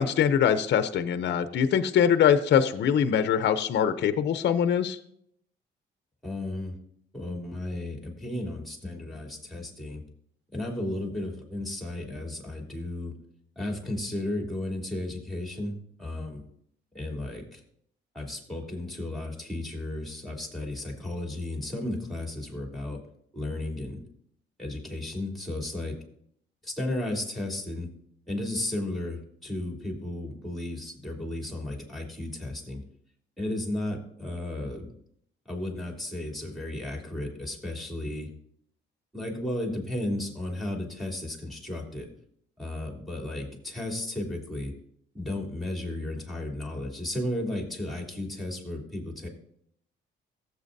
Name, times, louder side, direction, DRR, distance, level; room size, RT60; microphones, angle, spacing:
voice 1, 0.0-5.0, left 8 dB, 60° left, 10 dB, 0.7 m, -23 dB
voice 2, 6.2-6.7 7.1-10.0 10.5-13.1 13.5-16.4 16.9-17.6 18.1-23.0 23.3-24.0 24.6-26.0 26.6-27.9 28.3-32.8 33.4-34.9 35.4-38.3 39.1-42.1 42.6-44.7 45.1-49.3, left 1 dB, ahead, 0 dB, 3.1 m, -34 dB
15.0 x 8.1 x 2.7 m, 0.68 s
cardioid pair, 90°, 20 cm